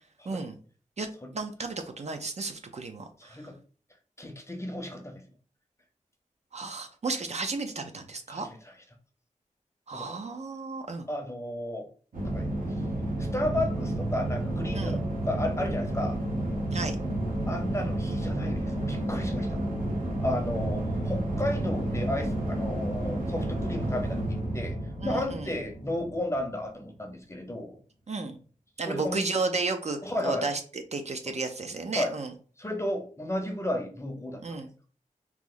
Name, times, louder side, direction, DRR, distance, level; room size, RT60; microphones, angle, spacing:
voice 1, 0.3-0.6 1.0-1.1 1.3-3.4 6.5-8.5 9.9-11.1 14.7-15.0 16.7-17.0 25.0-25.5 28.1-28.4 28.8-32.3 34.4-34.7, right 3 dB, 55° right, 6 dB, 0.5 m, -33 dB
voice 2, 4.2-5.2 8.3-8.6 9.9-10.2 11.1-11.9 12.2-12.5 13.2-16.2 17.5-19.6 20.2-27.8 28.8-29.2 30.0-30.5 31.9-32.1 32.6-34.4, left 1 dB, 20° left, 5 dB, 0.6 m, -33 dB
sound 1, 12.1-26.5, right 1 dB, 75° right, 1.0 m, -31 dB
3.0 x 2.0 x 3.7 m, 0.41 s
wide cardioid pair, 75°, 14 cm